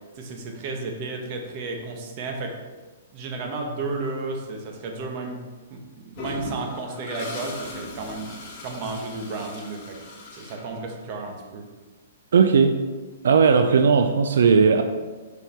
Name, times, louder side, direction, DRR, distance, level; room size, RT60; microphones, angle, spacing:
voice 1, 0.2-2.6 3.1-5.4 5.7-8.3 8.6-10.0 10.3-11.7, right 3 dB, 35° right, 2 dB, 1.0 m, -33 dB
Toilet flush, 6.2-11.2, left 2 dB, 30° left, 1.6 m, -38 dB
voice 2, 12.3-12.8 13.2-14.8, right 5 dB, 80° right, 7 dB, 0.4 m, -17 dB
5.2 x 4.6 x 4.5 m, 1.3 s
hypercardioid pair, 160°, 0 cm